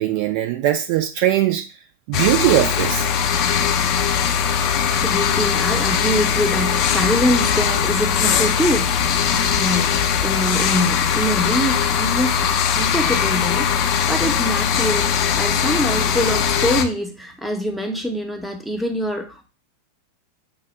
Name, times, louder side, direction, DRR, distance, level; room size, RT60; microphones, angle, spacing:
voice 1, 0.0-1.6 2.1-3.1, right 14 dB, 45° right, 5 dB, 0.5 m, -20 dB
sound 1, 2.1-16.8, left 7 dB, 40° left, 0.5 m, -20 dB
voice 2, 4.8-19.5, equal, ahead, 2 dB, 0.8 m, -24 dB
5.5 x 2.1 x 3.2 m, 0.33 s
figure-of-eight pair, 90°, 0 cm